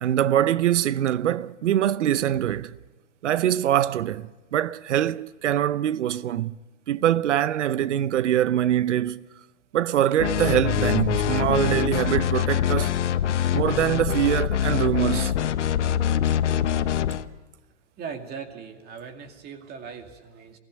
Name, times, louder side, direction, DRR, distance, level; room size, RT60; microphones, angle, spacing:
voice 1, 0.0-2.8 3.2-6.6 6.9-9.3 9.7-12.9 13.5-15.3, right 11 dB, 85° right, 0.7 m, -23 dB
sound 1, 10.2-17.3, left 9 dB, 80° left, 1.0 m, -24 dB
voice 2, 18.0-20.6, right 6 dB, 25° right, 2.3 m, -39 dB
22.0 x 16.0 x 8.0 m
hypercardioid pair, 130°, 35 cm